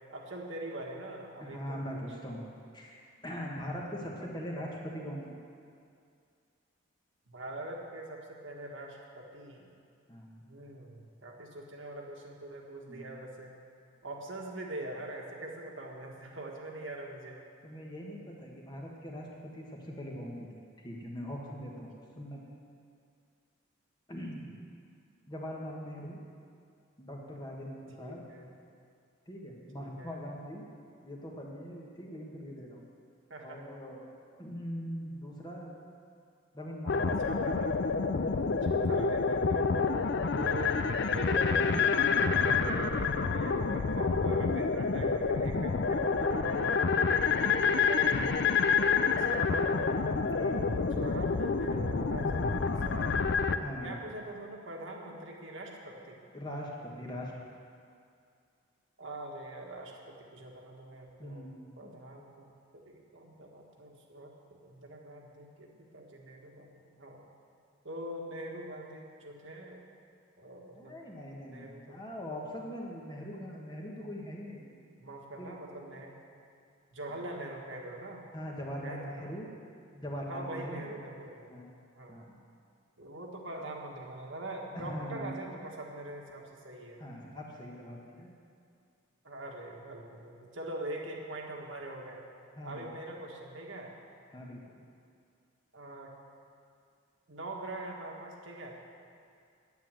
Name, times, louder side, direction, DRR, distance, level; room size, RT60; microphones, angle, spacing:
voice 1, 0.1-2.0 7.3-9.7 10.5-13.5 14.0-17.4 28.0-28.5 29.8-30.2 33.3-33.6 37.2-37.8 38.6-39.8 40.3-40.8 41.1-46.7 47.4-48.4 48.7-49.9 50.4-56.2 59.0-61.5 61.8-64.3 64.6-67.2 67.8-69.8 70.4-70.9 71.5-72.0 75.0-76.1 76.9-78.2 78.8-79.3 80.3-81.5 81.9-82.2 83.0-87.0 89.2-92.2 92.6-93.9 95.7-96.1 97.3-98.8, right 1 dB, 65° right, 0 dB, 1.6 m, -43 dB
voice 2, 1.4-2.4 2.7-5.2 10.1-10.4 12.9-13.2 17.6-20.5 20.8-21.9 22.2-22.4 24.1-24.5 25.3-26.2 27.0-28.2 29.3-30.7 31.0-32.8 33.4-35.7 36.5-37.3 38.3-39.1 47.2-47.5 50.3-50.6 53.6-54.1 56.3-57.3 61.2-62.0 70.7-74.6 75.4-75.6 77.1-77.2 78.3-79.5 79.9-81.0 81.5-81.7 82.1-82.4 84.7-85.3 87.0-88.3 92.5-92.9 94.3-94.8, equal, 20° left, -2 dB, 1.4 m, -42 dB
sound 1, 36.9-53.6, left 5 dB, 55° left, 0.4 m, -28 dB
9.5 x 9.3 x 7.6 m, 2.4 s
head